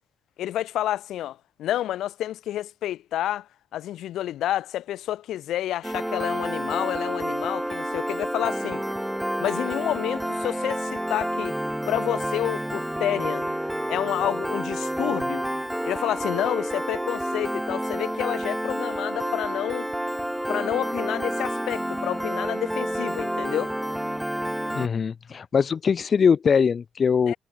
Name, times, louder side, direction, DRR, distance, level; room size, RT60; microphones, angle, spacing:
voice 1, 0.4-8.8 9.4-11.5 11.9-13.5 13.9-15.5 15.8-19.9 20.5-23.7 27.3-27.4, left 12 dB, 80° left, 5.6 m, -29 dB
Piano, 5.8-24.9, right 1 dB, 5° right, 2.4 m, -29 dB
voice 2, 24.7-27.3, left 6 dB, 45° left, 2.0 m, -22 dB
cardioid pair, 90°, 0 cm